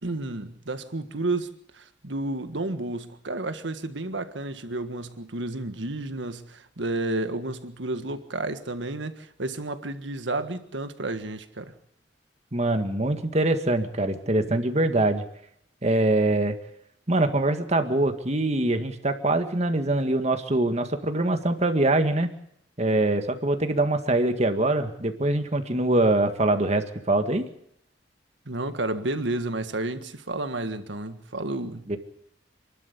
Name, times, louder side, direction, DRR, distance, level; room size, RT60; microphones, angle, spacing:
voice 1, 0.0-11.7 28.4-31.9, right 2 dB, 85° right, 1.6 m, -31 dB
voice 2, 12.5-15.2 15.8-16.5 17.1-22.3 22.8-27.5 31.9-32.0, right 2 dB, 35° right, 1.8 m, -23 dB
28.0 x 12.0 x 8.5 m
head